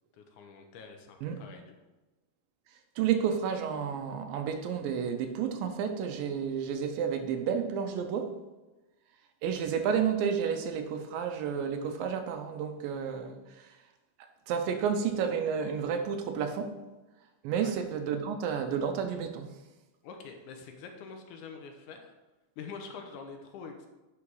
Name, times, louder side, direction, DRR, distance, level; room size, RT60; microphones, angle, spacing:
voice 1, 0.1-1.8 17.5-17.7 20.0-22.1 22.6-23.9, left 5 dB, 75° left, 4 dB, 2.2 m, -45 dB
voice 2, 3.0-8.3 9.4-13.8 14.5-16.8 17.4-19.5, right 7 dB, 90° right, 6 dB, 2.5 m, -31 dB
9.6 x 5.0 x 4.8 m, 1.1 s
omnidirectional pair, 3.9 m